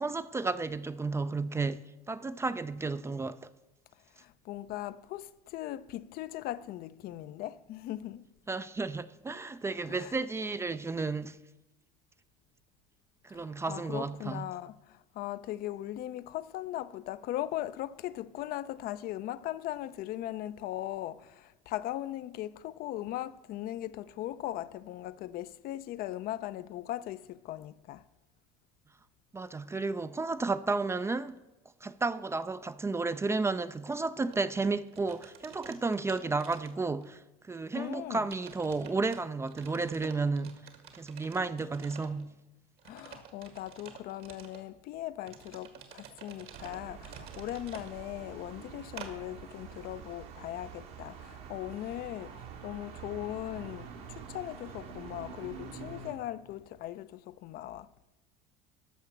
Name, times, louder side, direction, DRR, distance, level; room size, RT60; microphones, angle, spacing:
voice 1, 0.0-3.4 8.5-11.4 13.2-14.5 29.3-31.4 31.8-40.7 41.0-42.3, right 3 dB, 15° right, 0.4 m, -32 dB
voice 2, 4.2-8.2 9.9-10.1 13.3-28.0 37.7-38.3 42.9-52.3 52.6-57.9, left 13 dB, 55° left, 0.5 m, -39 dB
sound 1, 34.3-34.5 34.9-37.2 37.5-37.6 38.3-39.2 39.5-42.2 42.8-44.6 45.2-47.9 49.0-49.1, right 8 dB, 60° right, 1.8 m, -50 dB
sound 2, 46.5-56.1, right 7 dB, 75° right, 2.4 m, -46 dB
13.5 x 5.7 x 7.2 m
supercardioid pair, 100°, 18 cm